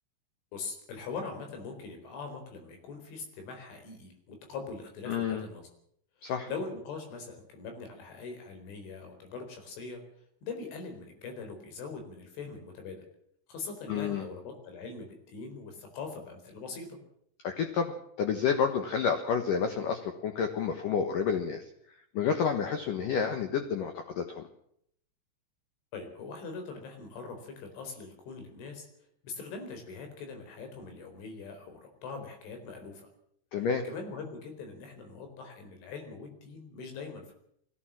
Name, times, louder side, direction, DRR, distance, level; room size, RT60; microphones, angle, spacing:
voice 1, 0.5-5.7 6.2-10.0 10.4-13.0 13.5-17.0 25.9-28.9 29.2-33.1 33.6-37.3, left 4 dB, 85° left, 5 dB, 6.8 m, -42 dB
voice 2, 5.1-5.4 6.2-6.5 13.9-14.3 17.4-21.6 22.1-24.5 33.5-33.8, left 6 dB, 60° left, 7 dB, 2.5 m, -29 dB
22.5 x 16.5 x 7.6 m, 0.69 s
omnidirectional pair, 5.3 m